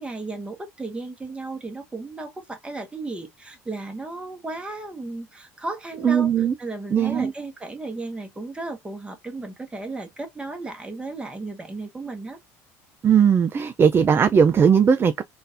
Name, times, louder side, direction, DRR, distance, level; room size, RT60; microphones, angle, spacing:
voice 1, 0.0-6.3 6.6-12.4, right 2 dB, 15° right, 1.4 m, -34 dB
voice 2, 6.0-6.5 6.9-7.3 13.0-15.2, right 7 dB, 30° right, 0.4 m, -18 dB
3.7 x 2.6 x 2.5 m
hypercardioid pair, 80°, 8 cm